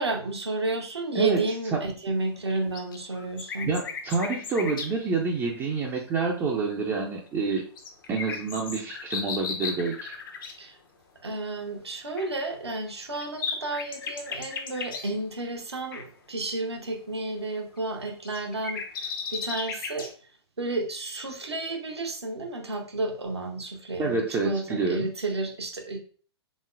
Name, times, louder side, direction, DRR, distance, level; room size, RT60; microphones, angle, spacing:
voice 1, 0.0-3.7 10.6-10.8 11.2-18.8 19.3-20.1 20.6-26.0, right 2 dB, 75° right, 2 dB, 0.8 m, -31 dB
voice 2, 1.1-1.4 1.7-1.8 3.6-7.6 8.1-10.2 24.0-25.1, right 4 dB, 15° right, -1 dB, 0.5 m, -28 dB
sound 1, 2.5-4.9 7.5-10.5 12.2-12.3 12.9-15.1 15.9-16.0 17.8-20.1, left 5 dB, 50° left, 0.9 m, -35 dB
4.1 x 3.6 x 2.4 m, 0.42 s
figure-of-eight pair, 110°, 14 cm